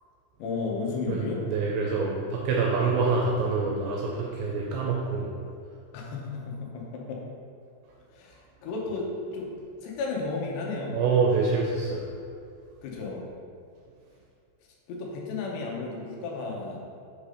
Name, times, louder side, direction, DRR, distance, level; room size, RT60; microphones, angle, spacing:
voice 1, 0.4-1.4 5.9-7.2 8.1-9.5 9.8-11.0 12.8-13.2 14.9-16.9, left 3 dB, 75° left, -2 dB, 2.6 m, -33 dB
voice 2, 1.1-5.3 10.9-12.1, right 4 dB, 85° right, -2 dB, 2.4 m, -26 dB
7.3 x 2.6 x 4.9 m, 2.4 s
omnidirectional pair, 5.4 m